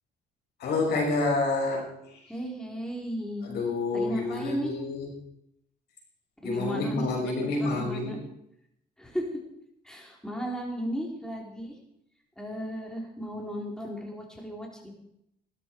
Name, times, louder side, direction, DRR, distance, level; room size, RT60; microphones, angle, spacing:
voice 1, 0.6-2.2 3.4-5.1 6.4-8.2, left 3 dB, 75° left, 0 dB, 6.3 m, -28 dB
voice 2, 2.3-3.5 3.9-4.8 6.4-8.2 9.0-9.3 9.8-11.8 12.4-15.0, equal, 5° left, -1 dB, 3.9 m, -35 dB
17.5 x 13.0 x 4.7 m, 0.77 s
cardioid pair, 105°, 18 cm